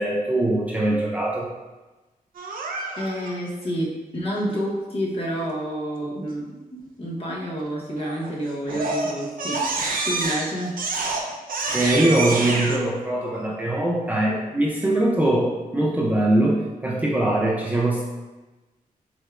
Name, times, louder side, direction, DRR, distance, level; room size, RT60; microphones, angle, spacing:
voice 1, 0.0-1.5 11.7-18.0, right 1 dB, 10° right, -4 dB, 0.5 m, -22 dB
Crying sobbing, 2.4-3.3 8.0-8.3 8.7-12.8, right 3 dB, 75° right, 0.6 m, -27 dB
voice 2, 3.0-6.5 7.0-9.6 10.0-10.8, equal, 40° left, -4 dB, 1.1 m, -28 dB
6.2 x 3.3 x 2.4 m, 1.2 s
wide cardioid pair, 160°, 15 cm